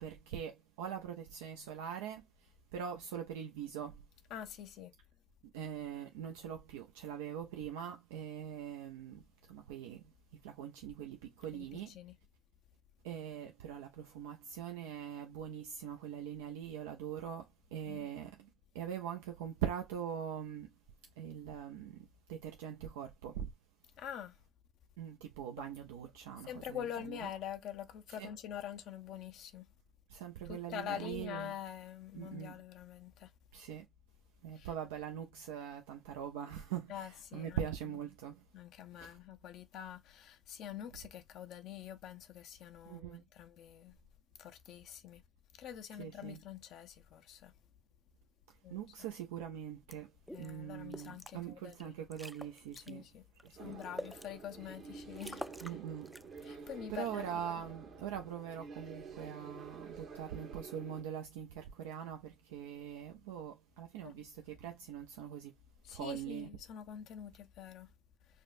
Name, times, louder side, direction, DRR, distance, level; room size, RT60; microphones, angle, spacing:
voice 1, 0.0-4.0 5.5-11.9 13.0-20.7 21.2-23.5 25.0-27.3 28.1-28.3 30.1-31.5 32.1-32.6 33.5-33.9 34.4-38.4 39.0-39.2 42.9-43.2 45.9-46.4 48.7-50.1 50.4-53.0 53.4-53.8 55.6-56.1 56.9-65.5 65.9-66.5, right 9 dB, 90° right, 0.4 m, -43 dB
voice 2, 4.3-4.9 11.5-12.2 17.9-18.3 24.0-24.3 26.5-29.7 30.5-33.3 34.6-34.7 36.9-37.7 38.5-44.0 44.4-45.2 45.6-47.5 48.6-48.9 50.3-51.9 52.8-53.2 53.6-55.4 56.4-57.3 64.0-64.1 65.8-67.9, left 10 dB, 75° left, 0.6 m, -45 dB
sound 1, 49.9-50.0 50.3-50.5 50.9-51.3 51.7-51.8 52.1-52.9 53.4-54.3 54.7-54.8 55.1-55.8 56.1-56.5, equal, ahead, 0.4 m, -46 dB
sound 2, 53.6-61.0, right 5 dB, 65° right, 1.1 m, -50 dB
5.0 x 2.1 x 2.4 m
hypercardioid pair, 50°, 0 cm